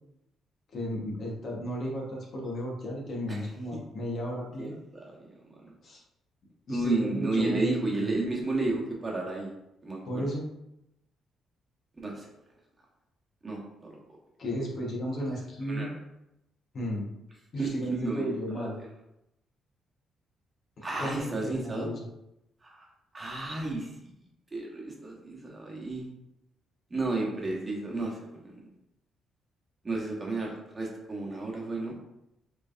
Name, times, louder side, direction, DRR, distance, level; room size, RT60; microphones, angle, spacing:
voice 1, 0.7-4.8 5.8-6.0 6.7-8.1 10.0-10.4 14.4-15.9 16.7-17.1 17.5-18.8 20.8-22.0, equal, 55° left, -2 dB, 1.2 m, -34 dB
voice 2, 4.6-5.1 5.6-5.7 6.7-9.5 9.8-10.2 12.0-12.3 13.4-13.9 15.6-15.9 17.6-18.7 20.8-21.9 22.6-22.9 23.1-24.1 24.5-26.1 26.9-28.6 29.8-32.0, right 2 dB, 25° right, -2 dB, 1.1 m, -32 dB
4.5 x 3.3 x 2.5 m, 0.86 s
cardioid pair, 90°, 0 cm